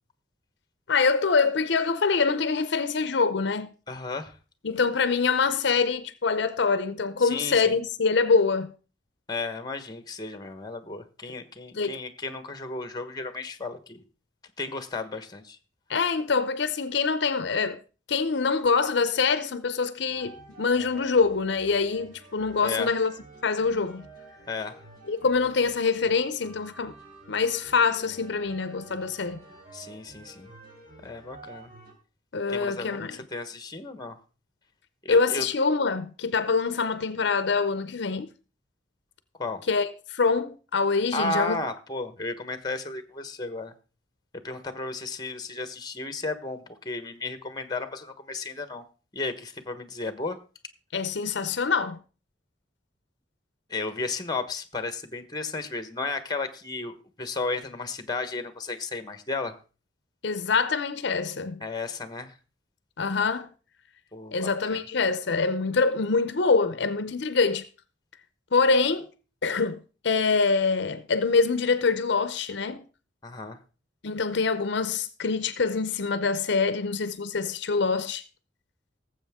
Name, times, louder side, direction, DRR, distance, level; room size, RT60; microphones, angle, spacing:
voice 1, 0.9-3.7 4.6-8.7 11.7-12.0 15.9-17.8 18.1-23.1 23.4-24.1 25.1-26.9 27.3-29.4 32.3-33.2 35.1-38.3 39.7-41.6 50.9-52.0 60.2-61.6 63.0-63.5 64.3-67.7 68.5-69.1 69.4-72.8 74.0-78.2, left 4 dB, 65° left, 0.7 m, -25 dB
voice 2, 3.9-4.4 7.2-7.8 9.3-14.0 14.6-15.6 22.6-22.9 24.5-24.8 29.7-30.5 31.0-31.7 32.5-34.2 35.0-35.4 39.4-39.6 41.1-43.7 44.4-48.8 49.1-50.4 53.7-59.6 61.6-62.3 64.1-64.8 73.2-73.6, left 3 dB, 20° left, 1.2 m, -34 dB
sound 1, 20.1-31.9, right 2 dB, 55° right, 4.0 m, -49 dB
18.0 x 7.7 x 3.6 m
head